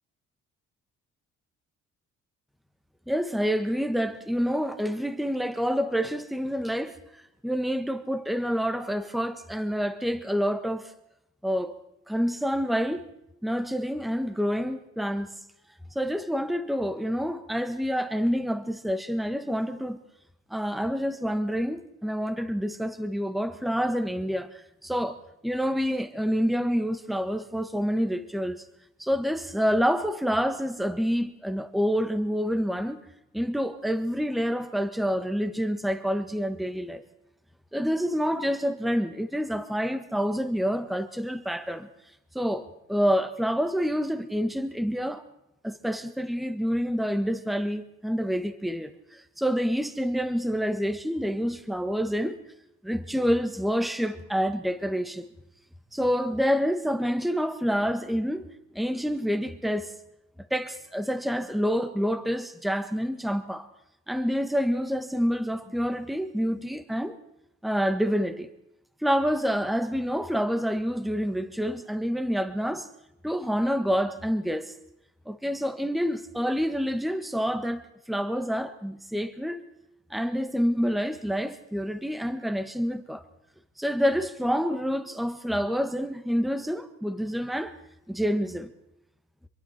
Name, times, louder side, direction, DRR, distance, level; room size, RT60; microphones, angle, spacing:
voice 1, 3.1-10.9 11.4-11.7 12.1-13.1 13.4-15.3 15.9-20.0 20.5-28.6 29.0-33.0 33.3-37.0 37.7-41.9 42.3-45.2 45.6-52.4 52.8-55.3 55.9-58.5 58.7-59.9 60.5-63.7 64.1-67.2 67.6-68.5 69.0-72.9 73.2-74.7 75.2-79.6 80.1-83.2 83.8-87.8 88.1-88.7, equal, ahead, 1.5 m, -27 dB
27.5 x 22.5 x 4.4 m
cardioid pair, 90°, 30 cm